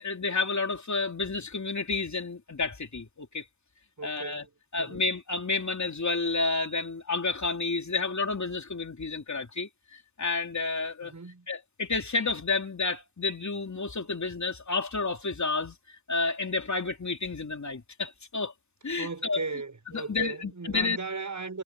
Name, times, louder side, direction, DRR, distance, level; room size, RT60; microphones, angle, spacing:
voice 1, 0.0-3.4 4.0-4.4 4.7-11.1 11.5-15.8 16.1-18.5 18.8-19.4 19.9-21.0, left 3 dB, 60° left, 3.2 m, -30 dB
voice 2, 4.0-4.5 4.8-5.0 11.0-11.5 19.0-21.6, right 4 dB, 65° right, 6.8 m, -37 dB
wide cardioid pair, 80°, 32 cm